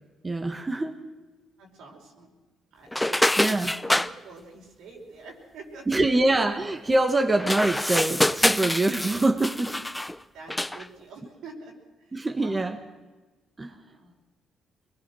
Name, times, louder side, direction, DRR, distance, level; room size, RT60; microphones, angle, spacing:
voice 1, 0.2-1.0 3.4-3.7 5.9-9.8 12.1-12.8 13.6-13.7, right 2 dB, 20° right, 5 dB, 1.6 m, -24 dB
voice 2, 1.6-2.3 2.7-6.2 10.3-12.8 13.6-14.1, right 3 dB, 85° right, 0 dB, 5.5 m, -47 dB
sound 1, 2.9-4.1 7.3-10.2 10.5-10.9, left 1 dB, 10° left, 0.6 m, -25 dB
24.5 x 20.5 x 6.4 m, 1.2 s
cardioid pair, 90°, 0 cm